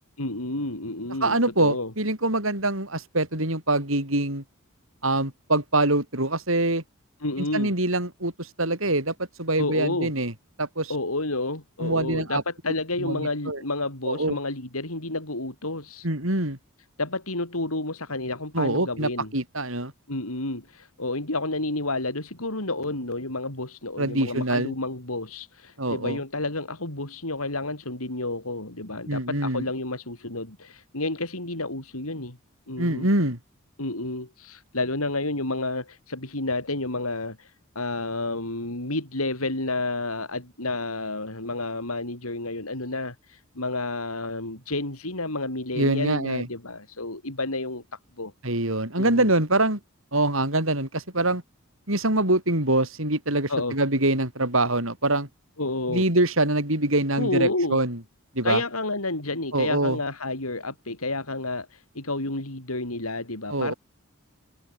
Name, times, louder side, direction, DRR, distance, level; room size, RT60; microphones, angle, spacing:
voice 1, 0.2-1.9 7.2-7.7 9.6-10.1 10.9-16.1 17.0-19.3 20.1-32.4 32.7-33.1 33.8-47.8 48.2-48.3 49.0-49.3 53.5-53.8 55.6-56.0 57.2-57.8 58.4-63.7, left 2 dB, 85° left, 5.6 m, -30 dB
voice 2, 1.2-4.4 5.0-6.8 7.5-10.3 10.6-10.9 11.8-12.4 13.0-13.6 14.1-14.4 16.0-16.6 18.5-19.9 24.0-24.7 25.8-26.2 29.1-29.6 32.8-33.4 45.8-46.5 48.4-49.8 50.1-51.4 51.9-55.3 55.9-58.0 58.4-58.6 59.5-60.0 63.5-63.7, right 2 dB, 65° right, 7.4 m, -24 dB
head